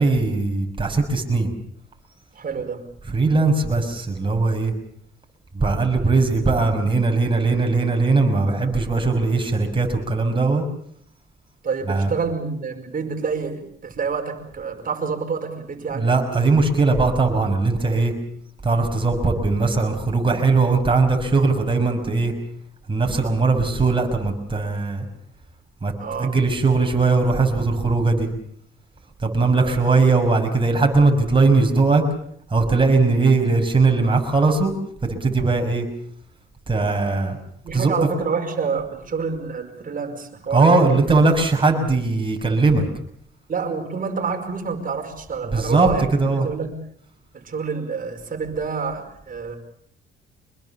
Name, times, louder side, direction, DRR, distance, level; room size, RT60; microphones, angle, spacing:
voice 1, 0.0-1.5 3.1-4.7 5.5-10.6 11.9-12.1 15.9-18.1 18.6-22.3 22.9-25.0 25.8-25.9 26.2-28.3 29.2-32.0 32.5-34.7 35.0-35.9 36.7-37.4 37.7-37.9 40.5-42.8 45.4-45.9 46.2-46.5, right 3 dB, 25° right, 3 dB, 6.3 m, -19 dB
voice 2, 2.3-2.9 11.6-16.5 26.0-26.4 29.5-29.9 37.6-41.1 43.5-46.7 47.3-49.6, right 5 dB, 45° right, 5 dB, 5.2 m, -28 dB
25.5 x 21.5 x 7.3 m, 0.65 s
cardioid pair, 90°, 20 cm